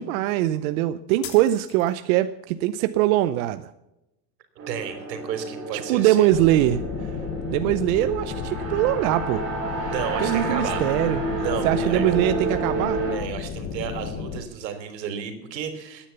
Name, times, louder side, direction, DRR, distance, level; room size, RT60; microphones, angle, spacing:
voice 1, 0.0-3.7 5.7-6.8 7.5-9.5 10.2-11.2 11.6-13.0, right 14 dB, 55° right, 11 dB, 0.7 m, -22 dB
sound 1, 1.2-2.2, left 8 dB, 70° left, 3.4 m, -40 dB
sound 2, 4.6-13.2, right 2 dB, 30° right, 7.2 m, -30 dB
voice 2, 4.7-6.3 9.9-10.9 11.4-12.2 13.1-16.1, right 8 dB, 85° right, 9 dB, 3.4 m, -32 dB
sound 3, 6.3-14.4, left 6 dB, 25° left, 1.1 m, -33 dB
14.5 x 10.0 x 6.9 m, 0.90 s
supercardioid pair, 155°, 49 cm